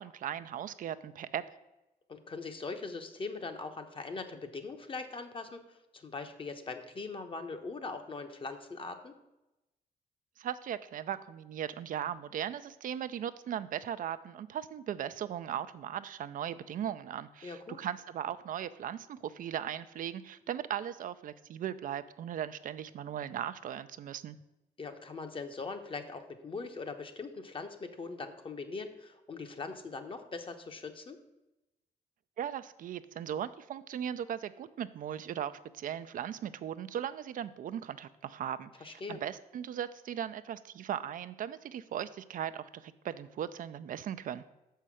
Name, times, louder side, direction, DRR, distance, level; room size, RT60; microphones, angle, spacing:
voice 1, 0.0-1.4 10.4-24.4 32.4-44.4, right 9 dB, 65° right, 12 dB, 0.4 m, -38 dB
voice 2, 2.1-9.1 17.4-17.8 24.8-31.2 38.8-39.2, left 4 dB, 35° left, 7 dB, 0.9 m, -41 dB
6.5 x 5.6 x 6.2 m, 0.96 s
cardioid pair, 105°, 15 cm